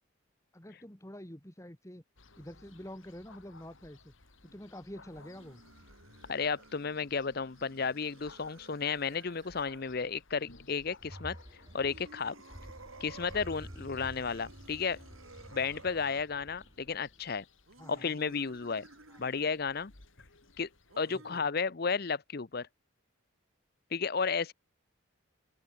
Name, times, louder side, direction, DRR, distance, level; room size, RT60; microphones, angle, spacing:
voice 1, 0.5-2.0 2.3-4.1 4.4-5.6 17.8-18.2 19.1-19.2 21.1-21.5, equal, 15° left, 2.6 m, -47 dB
sound 1, 2.2-21.0, left 3 dB, 70° left, 2.7 m, -60 dB
sound 2, 5.0-9.9 11.7-16.3 17.7-19.6 20.9-21.4, right 3 dB, 80° right, 3.4 m, -55 dB
voice 2, 6.3-11.4 11.7-12.4 13.0-15.0 15.5-17.4 17.9-18.9 19.2-19.9 20.6-20.7 21.0-22.7 23.9-24.5, left 5 dB, 50° left, 0.7 m, -33 dB
sound 3, 11.0-17.2, equal, 20° right, 2.4 m, -50 dB
open air
head